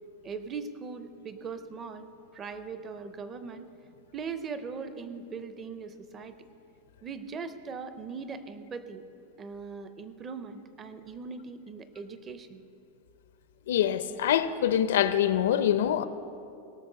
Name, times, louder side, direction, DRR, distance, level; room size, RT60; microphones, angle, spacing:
voice 1, 0.2-2.1 2.3-3.7 4.1-6.5 7.0-9.0 9.4-12.7, right 5 dB, 15° right, 10 dB, 0.5 m, -40 dB
voice 2, 13.7-16.0, left 10 dB, 75° left, 13 dB, 0.6 m, -25 dB
17.5 x 6.4 x 6.6 m, 2.7 s
supercardioid pair, 175°, 0 cm